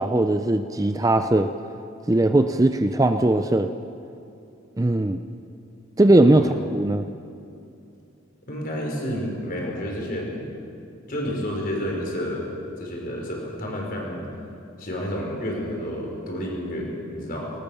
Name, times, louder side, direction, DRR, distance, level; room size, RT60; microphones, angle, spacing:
voice 1, 0.0-1.5 2.1-3.7 4.8-5.2 6.0-7.1, right 1 dB, 15° right, 8 dB, 0.5 m, -19 dB
voice 2, 8.5-10.5 11.1-12.5 12.8-14.2 14.8-17.5, equal, 45° left, -1 dB, 5.1 m, -30 dB
19.5 x 19.5 x 7.0 m, 2.6 s
head